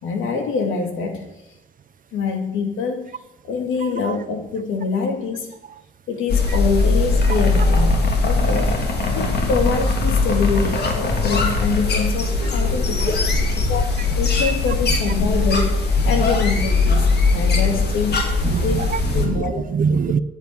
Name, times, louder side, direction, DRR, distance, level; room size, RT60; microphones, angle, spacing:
voice 1, 0.0-1.3 2.1-3.0 3.4-5.5 6.1-8.7 9.1-13.1 13.7-13.9 14.2-18.2 18.6-18.8 19.1-19.6 19.9-20.0, left 5 dB, 80° left, 4 dB, 2.7 m, -25 dB
voice 2, 3.8-4.2 6.5-6.6 7.2-7.4 13.3-14.2 14.9-15.0 16.2-16.3 18.4-20.2, right 6 dB, 45° right, 15 dB, 0.7 m, -25 dB
sound 1, 6.3-19.3, left 3 dB, 55° left, 3.0 m, -20 dB
10.5 x 9.0 x 9.4 m, 0.94 s
cardioid pair, 90°, 20 cm